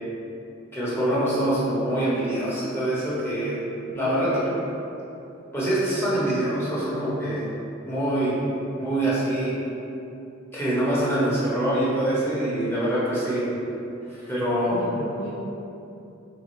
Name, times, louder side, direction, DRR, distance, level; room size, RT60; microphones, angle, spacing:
voice 1, 0.7-3.6 3.9-4.4 5.5-7.5 7.9-8.3 8.8-9.5 10.5-13.4 14.1-14.8, right 1 dB, 10° left, -9 dB, 1.1 m, -24 dB
voice 2, 4.0-4.5 14.7-15.3, left 1 dB, 65° left, -6 dB, 0.5 m, -34 dB
3.6 x 2.8 x 4.3 m, 2.8 s
head